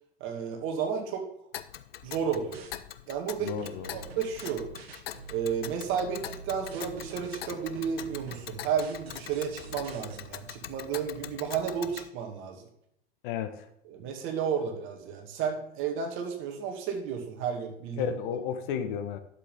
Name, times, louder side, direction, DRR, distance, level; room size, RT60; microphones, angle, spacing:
voice 1, 0.2-1.2 2.0-2.7 3.1-3.5 3.9-4.7 5.3-12.6 13.9-18.1, right 7 dB, 40° right, 3 dB, 2.3 m, -32 dB
Tick, 1.5-12.1, left 11 dB, 70° left, 0.7 m, -43 dB
sound 1, 2.5-2.7 3.6-10.2, right 6 dB, 70° right, 1.5 m, -47 dB
voice 2, 3.4-3.9 13.2-13.7 18.0-19.2, left 8 dB, 55° left, 9 dB, 1.1 m, -32 dB
11.5 x 7.6 x 3.6 m, 0.74 s
hypercardioid pair, 100°, 31 cm